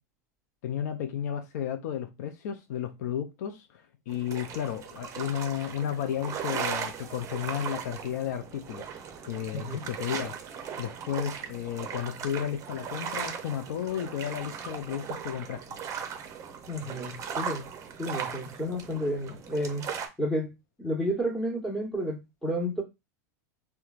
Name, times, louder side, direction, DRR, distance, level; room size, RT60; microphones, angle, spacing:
voice 1, 0.6-8.9 9.2-10.4 10.8-15.6, left 9 dB, 70° left, 0.4 m, -33 dB
sound 1, 4.1-20.1, right 7 dB, 35° right, 0.6 m, -38 dB
voice 2, 16.7-17.6 18.0-19.8 20.2-20.5 20.8-22.8, equal, 5° left, 1.1 m, -31 dB
3.0 x 2.2 x 2.4 m
hypercardioid pair, 100°, 9 cm